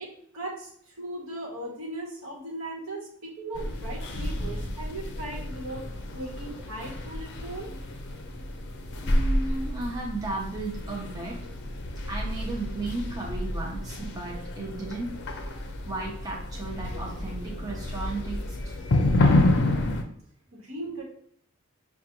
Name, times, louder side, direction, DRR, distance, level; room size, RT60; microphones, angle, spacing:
voice 1, 0.0-5.8 6.1-7.7 20.5-21.0, right 2 dB, 65° right, -1 dB, 1.1 m, -38 dB
sound 1, 3.5-20.0, left 1 dB, 55° left, 0.5 m, -29 dB
voice 2, 8.9-11.5 12.1-15.2 15.8-18.7, right 2 dB, 15° right, -3 dB, 0.6 m, -35 dB
5.3 x 2.2 x 2.9 m, 0.64 s
head